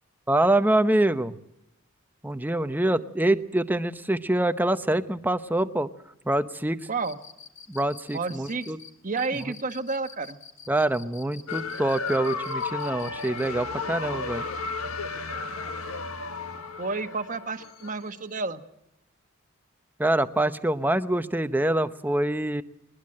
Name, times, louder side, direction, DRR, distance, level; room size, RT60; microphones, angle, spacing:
voice 1, 0.3-1.4 2.2-5.9 6.3-6.8 7.7-8.8 9.3-9.5 10.7-14.4 20.0-22.6, right 1 dB, 10° right, 11 dB, 0.8 m, -25 dB
Cricket, 7.0-13.6, left 6 dB, 60° left, 1.7 m, -47 dB
voice 2, 8.1-8.7 9.0-10.4 16.8-18.6, right 3 dB, 40° right, 8 dB, 1.2 m, -30 dB
sound 1, 11.5-18.1, left 4 dB, 85° left, 1.5 m, -34 dB
21.0 x 20.5 x 7.7 m, 0.80 s
head